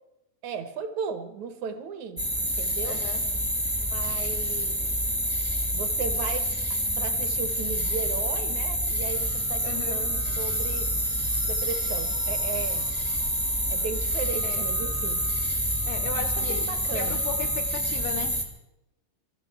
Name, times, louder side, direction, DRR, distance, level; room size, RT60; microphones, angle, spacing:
voice 1, 0.4-3.0 3.9-4.9 5.7-6.5 7.0-10.9 11.4-12.9 13.7-15.2 16.1-17.2, right 6 dB, 65° right, 10 dB, 2.1 m, -36 dB
sound 1, 2.2-18.4, equal, 10° right, 0.4 m, -27 dB
voice 2, 2.8-3.3 9.6-10.0 14.4-14.6 15.9-16.7 16.9-18.4, left 8 dB, 75° left, 4 dB, 1.6 m, -36 dB
sound 2, 7.7-17.6, right 3 dB, 90° right, 6.9 m, -50 dB
20.5 x 13.5 x 4.6 m, 0.93 s
omnidirectional pair, 4.0 m